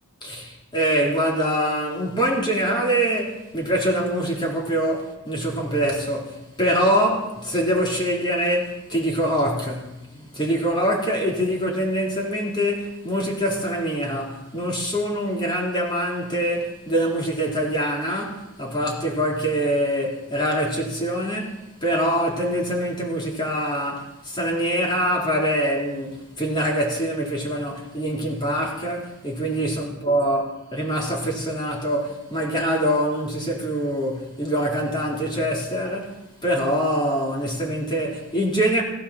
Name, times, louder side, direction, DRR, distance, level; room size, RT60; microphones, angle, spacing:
voice 1, 0.2-38.8, equal, 20° left, 3.8 m, -24 dB
20.5 x 16.0 x 4.3 m
head